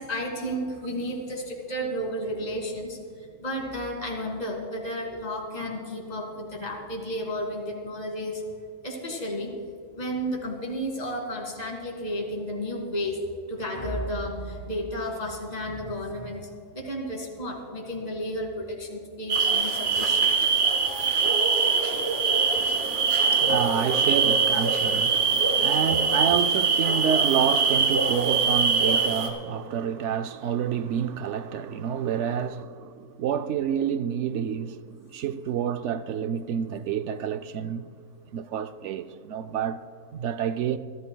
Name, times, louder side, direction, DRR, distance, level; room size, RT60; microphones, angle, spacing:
voice 1, 0.0-8.4 8.8-9.5 9.9-13.2 13.5-20.5 32.2-32.3, equal, 25° left, 2.3 m, -32 dB
sound 1, 19.3-29.3, right 5 dB, 45° right, 1.9 m, -23 dB
voice 2, 22.5-37.9 38.3-39.8 40.1-40.8, right 8 dB, 65° right, 0.7 m, -29 dB
26.0 x 12.5 x 2.3 m
omnidirectional pair, 1.6 m